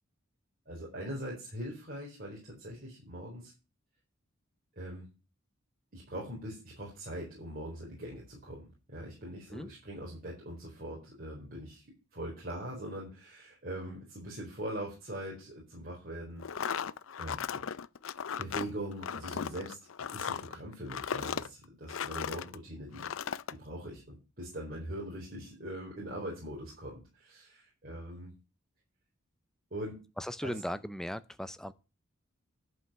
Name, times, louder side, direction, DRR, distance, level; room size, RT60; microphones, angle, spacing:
voice 1, 0.7-3.5 4.8-5.1 5.9-11.8 12.1-16.8 17.1-17.6 18.4-19.8 20.1-23.1 23.5-28.3 29.7-30.0 30.4-30.5, right 1 dB, 50° right, 4.4 m, -42 dB
sound 1, 16.4-22.6 22.9-23.5, left 7 dB, 75° left, 0.5 m, -36 dB
voice 2, 30.2-31.7, equal, 5° left, 0.6 m, -37 dB
11.5 x 5.6 x 7.5 m
head